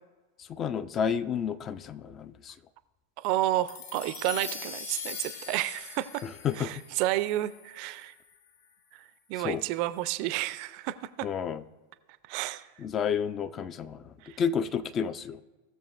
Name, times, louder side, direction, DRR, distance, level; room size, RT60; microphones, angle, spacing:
voice 1, 0.4-2.5 6.2-6.7 9.4-9.6 11.2-11.6 12.8-15.4, left 7 dB, 30° left, 13 dB, 0.4 m, -31 dB
voice 2, 3.2-6.2 6.6-8.1 8.9-9.0 9.3-11.3 12.3-12.7 14.2-14.4, right 15 dB, 45° right, 15 dB, 0.4 m, -31 dB
sound 1, 3.7-8.2, left 6 dB, 55° left, 1.5 m, -42 dB
17.5 x 6.8 x 2.4 m, 1.2 s
figure-of-eight pair, 90°, 0 cm